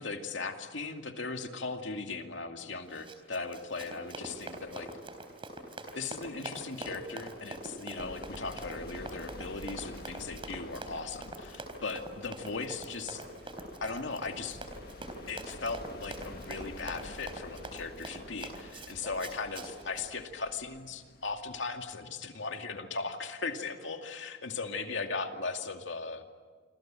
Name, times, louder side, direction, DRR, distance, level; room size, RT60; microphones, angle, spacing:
voice 1, 0.0-4.9 5.9-13.2 13.8-14.6 15.3-26.2, left 4 dB, 80° left, 5 dB, 2.4 m, -38 dB
Run, 2.9-20.1, right 2 dB, 30° right, 3.7 m, -44 dB
sound 1, 8.0-21.9, left 1 dB, 55° left, 1.6 m, -50 dB
26.5 x 26.5 x 7.6 m, 1.5 s
head